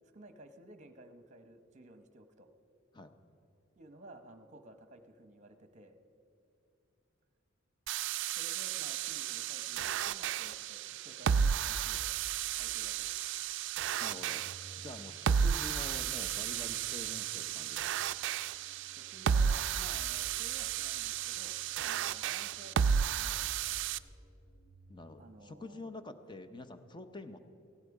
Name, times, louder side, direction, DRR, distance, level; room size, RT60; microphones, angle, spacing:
voice 1, 0.1-2.5 3.8-6.0 8.4-12.1 12.5-13.3 18.9-23.6 25.2-25.9, right 1 dB, 35° right, 9 dB, 1.0 m, -54 dB
sound 1, 7.9-24.0, right 8 dB, 60° right, 0.3 m, -33 dB
voice 2, 14.0-14.4 14.8-17.8 24.9-27.4, left 2 dB, 25° left, 9 dB, 0.7 m, -47 dB
Organ, 14.3-25.3, right 1 dB, 45° left, 1.7 m, -60 dB
16.5 x 16.0 x 4.8 m, 2.7 s
head